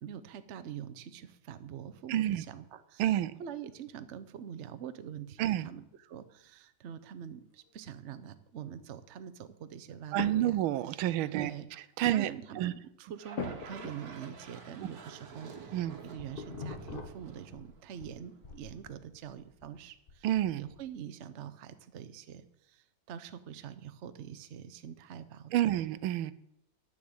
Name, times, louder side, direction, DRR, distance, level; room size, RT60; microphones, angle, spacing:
voice 1, 0.0-10.6 10.9-25.5, right 9 dB, 70° right, 12 dB, 0.6 m, -45 dB
voice 2, 2.1-2.4 3.0-3.4 5.4-5.7 10.1-11.5 12.0-12.3 12.6-12.7 15.7-16.0 20.2-20.6 25.5-26.3, right 13 dB, 90° right, 16 dB, 1.5 m, -29 dB
sound 1, 6.4-6.5 7.5-7.9 10.2-10.7 11.1-11.2 11.5-11.6 12.1-12.3 13.3-14.3 16.4-16.5 16.9-17.5 17.9-18.0, left 5 dB, 55° left, 1.8 m, -42 dB
sound 2, 13.2-18.5, right 5 dB, 50° right, 1.7 m, -50 dB
sound 3, 15.7-18.1 18.4-20.8, left 4 dB, 35° left, 1.1 m, -46 dB
9.6 x 7.2 x 7.9 m, 0.77 s
omnidirectional pair, 2.2 m